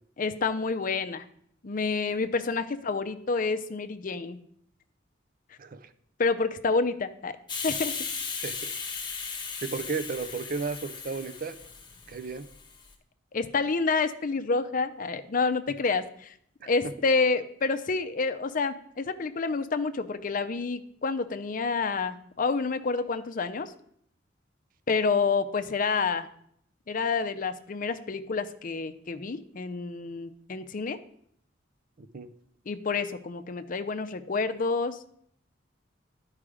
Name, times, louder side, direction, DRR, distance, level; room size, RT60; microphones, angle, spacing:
voice 1, 0.2-1.2 1.6-4.4 6.2-7.4 7.6-7.9 13.3-16.3 16.7-23.7 24.9-26.3 26.9-31.0 32.7-35.0, left 4 dB, 45° left, 10 dB, 0.5 m, -28 dB
voice 2, 5.6-5.9 8.3-8.7 9.6-11.6 12.1-12.5 16.6-16.7 32.0-32.3, right 4 dB, 45° right, 12 dB, 0.5 m, -34 dB
Hiss, 7.5-12.9, left 5 dB, 25° left, 1.1 m, -36 dB
11.0 x 4.8 x 4.9 m, 0.68 s
head